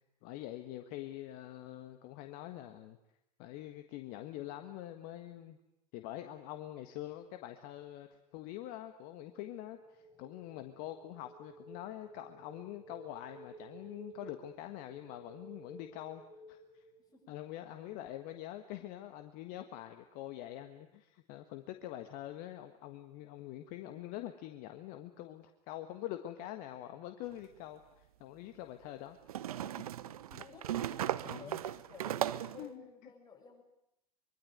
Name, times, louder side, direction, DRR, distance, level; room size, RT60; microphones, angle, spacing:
voice 1, 0.2-3.0 3.4-5.6 5.9-16.2 16.5-16.8 17.3-29.2 30.0-30.4 31.3-31.6 32.6-32.9, left 13 dB, 45° left, 8 dB, 1.6 m, -45 dB
sound 1, 8.7-17.6, right 2 dB, 15° right, 7.6 m, -55 dB
sound 2, 27.3-27.4 29.3-32.7, right 12 dB, 65° right, 1.0 m, -37 dB
voice 2, 30.4-33.6, left 4 dB, 20° left, 1 dB, 7.6 m, -54 dB
24.5 x 23.5 x 9.6 m, 0.82 s
figure-of-eight pair, 85°, 21 cm